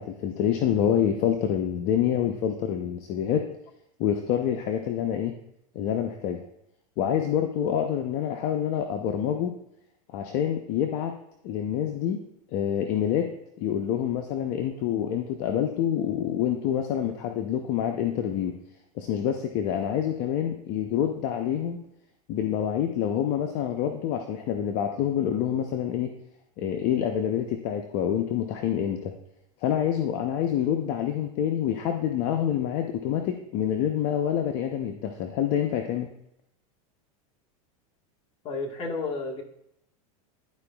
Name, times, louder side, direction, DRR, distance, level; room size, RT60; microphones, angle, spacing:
voice 1, 0.0-3.4 4.0-5.3 5.7-6.4 7.0-9.5 10.1-11.1 11.4-12.2 12.5-18.5 19.0-21.8 22.3-26.1 26.6-29.1 29.6-36.1, left 9 dB, 50° left, 5 dB, 0.7 m, -27 dB
voice 2, 38.4-39.4, left 3 dB, 35° left, 1 dB, 1.5 m, -31 dB
12.0 x 4.8 x 2.3 m, 0.77 s
supercardioid pair, 120°, 18 cm